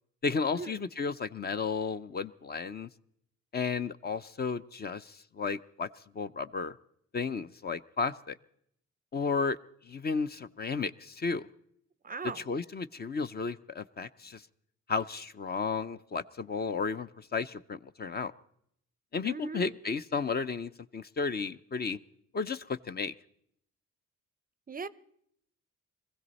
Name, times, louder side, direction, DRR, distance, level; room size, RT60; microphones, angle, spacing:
voice 1, 0.2-2.9 3.5-5.9 6.1-6.8 7.1-8.4 9.1-9.6 9.9-11.5 12.4-14.4 14.9-18.3 19.1-22.0 22.3-23.1, left 5 dB, 35° left, 0.6 m, -33 dB
voice 2, 12.0-12.4 19.2-19.7 24.7-24.9, right 5 dB, 30° right, 0.5 m, -38 dB
22.0 x 15.5 x 4.1 m
cardioid pair, 90°, 30 cm